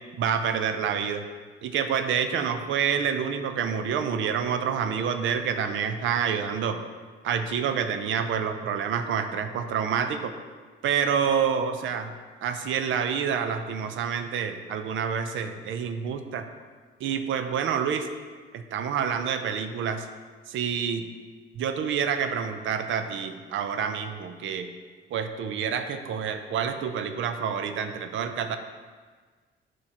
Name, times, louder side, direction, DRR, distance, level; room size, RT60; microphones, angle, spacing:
voice 1, 0.2-1.2 1.6-6.8 7.2-10.3 10.8-12.1 12.4-16.5 17.0-18.1 18.5-20.1 20.5-21.0 21.6-24.7 25.1-28.6, right 7 dB, 75° right, 8 dB, 0.6 m, -28 dB
12.0 x 4.6 x 2.9 m, 1.5 s
cardioid pair, 90°, 20 cm